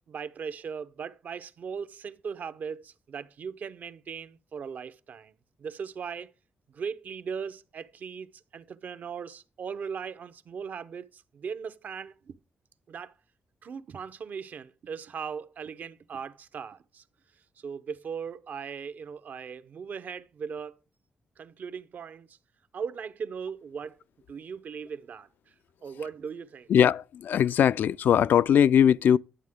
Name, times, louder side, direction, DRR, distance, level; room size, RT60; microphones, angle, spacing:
voice 1, 0.0-5.3 5.6-6.3 6.7-12.4 12.9-13.1 13.6-17.0 17.6-20.8 21.4-22.4 22.7-24.0 24.3-25.3 25.8-26.7, right 6 dB, 65° right, 0.8 m, -38 dB
voice 2, 26.7-29.2, left 9 dB, 75° left, 0.4 m, -20 dB
11.0 x 7.6 x 3.6 m
cardioid pair, 80°, 3 cm